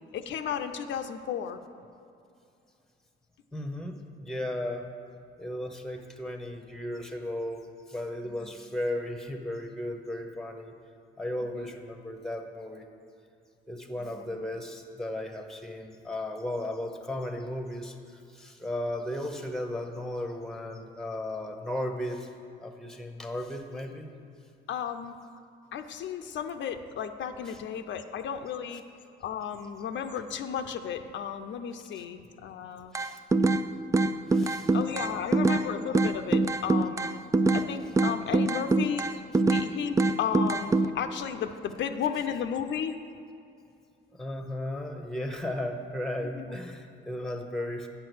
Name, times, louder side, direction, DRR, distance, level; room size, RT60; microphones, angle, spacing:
voice 1, 0.1-1.6 8.2-8.5 11.5-11.7 14.0-14.2 24.7-25.2 25.7-28.9 29.2-32.9 34.7-37.2 37.5-43.0 46.4-46.5, left 8 dB, 70° left, 7 dB, 0.6 m, -34 dB
voice 2, 3.5-4.9 5.4-10.7 11.2-12.9 13.7-22.3 22.6-24.1 27.5-27.6 31.9-32.0 32.9-33.2 34.3-34.7 44.1-47.9, left 1 dB, ahead, 5 dB, 1.0 m, -35 dB
sound 1, 32.9-33.6 33.9-35.6 35.9-37.7 38.0-39.7 40.0-40.9, right 3 dB, 15° right, 0.3 m, -23 dB
8.6 x 6.6 x 6.2 m, 2.5 s
cardioid pair, 90°, 20 cm